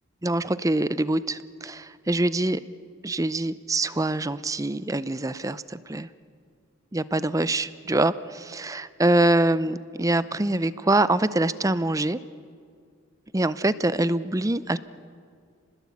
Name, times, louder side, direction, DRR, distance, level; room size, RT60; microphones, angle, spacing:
voice 1, 0.2-2.6 3.0-6.1 6.9-12.2 13.3-14.8, right 2 dB, 15° right, 15 dB, 0.6 m, -24 dB
29.5 x 20.5 x 8.6 m, 2.1 s
head